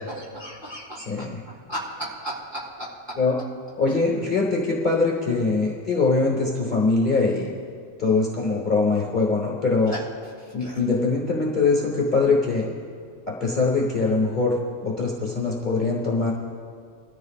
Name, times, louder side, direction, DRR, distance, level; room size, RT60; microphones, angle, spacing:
voice 1, 0.2-1.3 1.7-2.9 9.9-10.0 10.4-10.8, equal, 20° right, -8 dB, 4.0 m, -35 dB
voice 2, 1.1-1.4 3.2-3.4 3.8-7.5 8.0-9.9 10.5-12.7 13.3-16.3, left 3 dB, 35° left, -3 dB, 1.4 m, -22 dB
22.5 x 13.5 x 2.4 m, 2.2 s
omnidirectional pair, 1.4 m